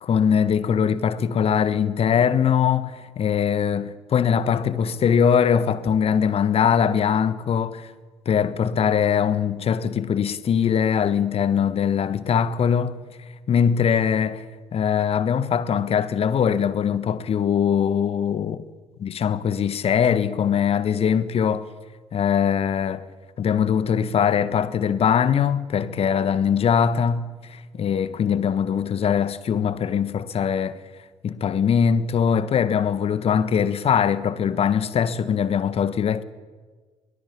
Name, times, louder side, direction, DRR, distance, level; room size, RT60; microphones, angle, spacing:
voice 1, 0.0-7.9 8.2-13.0 13.5-14.4 14.7-18.6 19.0-21.7 22.1-23.1 23.4-30.8 31.2-36.2, left 7 dB, 45° left, 1.4 m, -21 dB
22.5 x 20.0 x 8.6 m
figure-of-eight pair, 45°, 14 cm